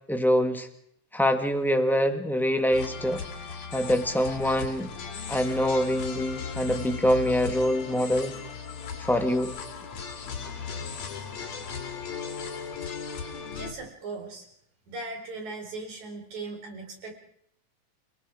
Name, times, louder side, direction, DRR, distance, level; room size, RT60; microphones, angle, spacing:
voice 1, 0.1-0.7 1.1-3.2 3.7-4.9 5.3-8.3 9.0-9.5, equal, ahead, 6 dB, 0.7 m, -25 dB
sound 1, 2.7-13.7, left 6 dB, 65° left, 3.3 m, -37 dB
voice 2, 13.6-14.5 14.9-17.2, right 3 dB, 70° right, 3 dB, 5.7 m, -38 dB
30.0 x 19.0 x 4.9 m, 0.68 s
omnidirectional pair, 3.4 m